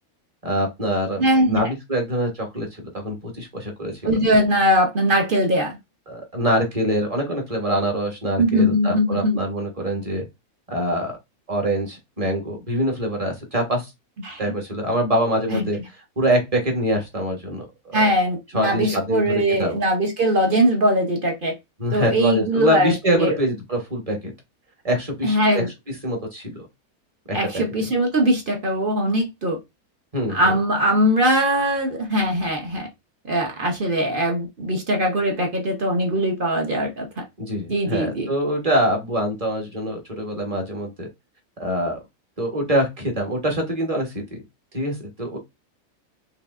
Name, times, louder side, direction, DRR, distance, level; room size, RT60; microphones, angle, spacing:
voice 1, 0.4-2.7 2.9-4.2 6.1-10.2 10.7-11.2 11.5-13.9 14.4-15.8 16.2-18.1 18.5-19.8 21.8-24.2 24.8-25.6 26.0-26.7 27.3-27.9 30.1-30.4 37.4-41.1 41.6-42.0 42.4-44.4 44.7-45.4, equal, 25° right, 1.2 m, -24 dB
voice 2, 1.2-1.7 4.0-5.8 8.4-9.4 14.2-14.4 15.5-15.6 17.9-21.5 21.9-23.3 25.2-25.7 27.3-29.6 30.3-32.9 33.3-37.2 37.7-38.3, equal, 40° right, 0.9 m, -21 dB
4.8 x 3.3 x 2.5 m
omnidirectional pair, 1.6 m